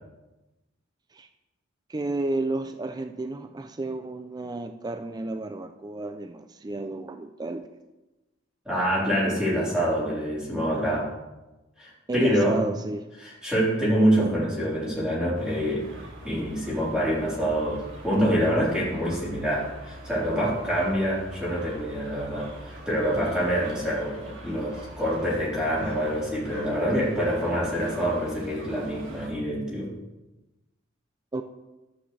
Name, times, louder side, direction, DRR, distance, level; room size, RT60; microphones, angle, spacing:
voice 1, 1.9-7.6 12.1-13.1 31.3-31.4, right 2 dB, 20° right, 8 dB, 0.4 m, -32 dB
voice 2, 8.7-11.1 11.8-12.6 13.2-15.8 16.2-29.9, equal, 5° right, -8 dB, 3.9 m, -26 dB
sound 1, 15.3-29.3, right 1 dB, 75° right, 2.3 m, -43 dB
12.5 x 8.5 x 3.3 m, 1.1 s
head